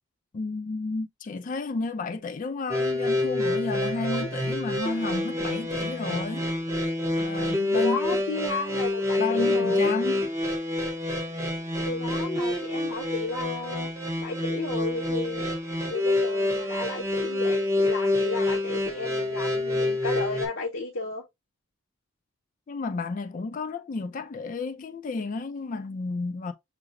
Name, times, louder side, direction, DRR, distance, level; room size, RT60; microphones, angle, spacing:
voice 1, 0.3-6.5 7.2-8.0 9.2-10.3 22.7-26.5, left 3 dB, 40° left, 0.3 m, -32 dB
sound 1, 2.7-20.5, left 2 dB, 15° right, 0.6 m, -27 dB
voice 2, 7.7-9.9 11.9-13.9 14.2-15.4 15.9-21.2, left 3 dB, 65° left, 0.7 m, -33 dB
5.8 x 2.0 x 2.3 m
head